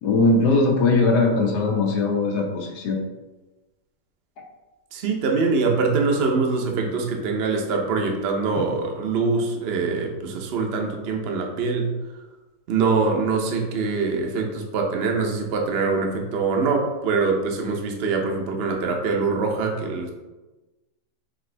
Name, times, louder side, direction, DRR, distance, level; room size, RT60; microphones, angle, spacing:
voice 1, 0.0-3.0 8.5-8.6, left 3 dB, 80° left, 0 dB, 1.4 m, -20 dB
voice 2, 4.9-11.9 12.7-20.1, right 4 dB, 55° right, 1 dB, 0.7 m, -24 dB
5.1 x 3.0 x 3.3 m, 1.1 s
omnidirectional pair, 1.7 m